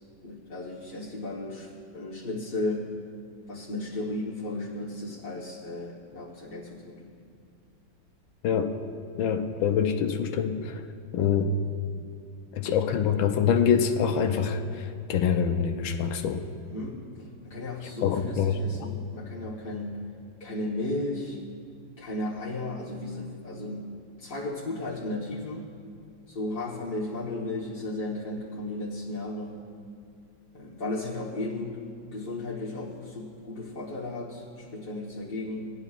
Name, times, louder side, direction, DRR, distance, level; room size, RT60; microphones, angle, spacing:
voice 1, 0.2-2.9 3.5-7.1 16.7-20.0 20.4-21.4 22.0-23.9 24.2-25.7 26.3-29.6 30.5-31.8 32.1-35.7, left 2 dB, 35° left, -8 dB, 1.1 m, -34 dB
voice 2, 8.4-8.8 9.2-10.8 11.1-11.5 12.5-16.4 18.0-18.6, left 7 dB, 80° left, 6 dB, 1.4 m, -25 dB
18.5 x 11.0 x 2.4 m, 2.4 s
omnidirectional pair, 2.1 m